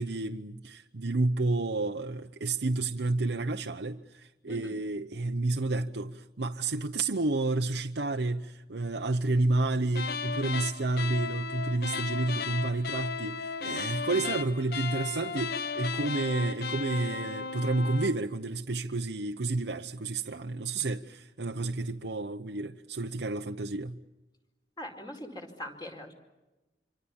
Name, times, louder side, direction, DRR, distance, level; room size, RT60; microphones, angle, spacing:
voice 1, 0.0-24.0, right 2 dB, 70° right, 0.9 m, -30 dB
sound 1, 9.9-18.2, left 5 dB, 60° left, 1.1 m, -35 dB
voice 2, 24.8-26.2, left 1 dB, 25° left, 4.6 m, -42 dB
27.5 x 25.0 x 7.1 m
head